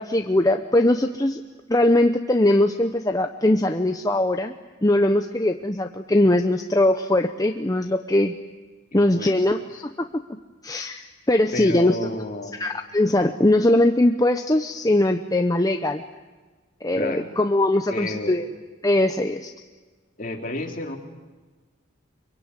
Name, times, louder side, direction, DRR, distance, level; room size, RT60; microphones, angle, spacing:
voice 1, 0.0-1.4 1.7-4.5 4.8-8.3 8.9-10.2 10.6-12.0 12.6-16.0 16.8-18.5 18.8-19.5, left 1 dB, 20° left, 6 dB, 0.8 m, -21 dB
voice 2, 8.9-9.8 11.5-12.6 16.9-17.3 17.9-18.4 20.2-21.0, left 2 dB, 40° left, 2 dB, 3.1 m, -32 dB
25.0 x 24.0 x 9.8 m, 1.3 s
head